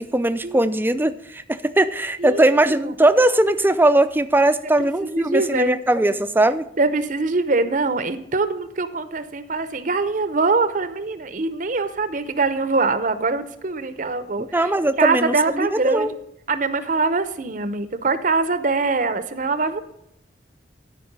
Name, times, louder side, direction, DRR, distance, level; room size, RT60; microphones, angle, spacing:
voice 1, 0.0-6.6 14.5-16.1, right 1 dB, 10° right, 11 dB, 0.5 m, -19 dB
voice 2, 2.2-2.9 5.0-5.8 6.8-14.7 15.0-16.1 16.5-19.8, right 3 dB, 45° right, 12 dB, 0.8 m, -23 dB
12.5 x 5.4 x 5.4 m, 0.78 s
head